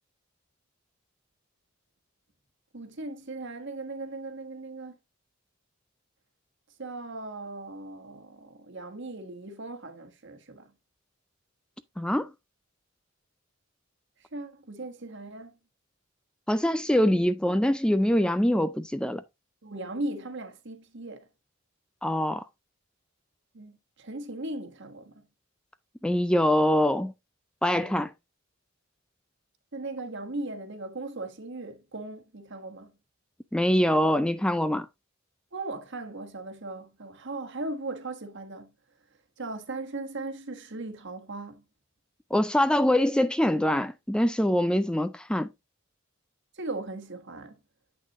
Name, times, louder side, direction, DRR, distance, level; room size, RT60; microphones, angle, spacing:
voice 1, 2.7-5.0 6.8-10.7 14.3-15.6 19.6-21.3 23.5-25.3 27.8-28.0 29.7-32.9 35.5-38.7 39.4-41.6 46.5-47.6, right 2 dB, 60° right, 1.5 m, -38 dB
voice 2, 12.0-12.3 16.5-19.2 22.0-22.4 26.0-27.1 27.6-28.1 33.5-34.9 42.3-45.5, left 1 dB, 5° left, 0.3 m, -24 dB
8.5 x 6.0 x 3.0 m
head